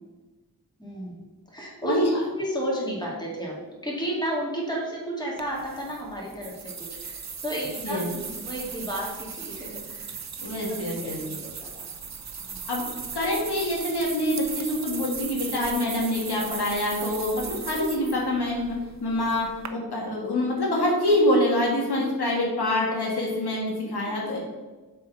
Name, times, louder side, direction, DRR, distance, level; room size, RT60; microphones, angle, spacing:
voice 1, 0.8-2.0 2.4-10.2 10.7-11.9 12.4-12.6 23.8-24.4, right 1 dB, 10° left, -4 dB, 2.4 m, -33 dB
sound 1, 5.4-19.7, right 6 dB, 45° right, 0.7 m, -38 dB
voice 2, 10.4-11.2 12.7-12.9 13.1-18.7 19.0-24.4, left 1 dB, 85° left, -2 dB, 1.9 m, -25 dB
7.3 x 4.4 x 5.7 m, 1.2 s
wide cardioid pair, 85°, 38 cm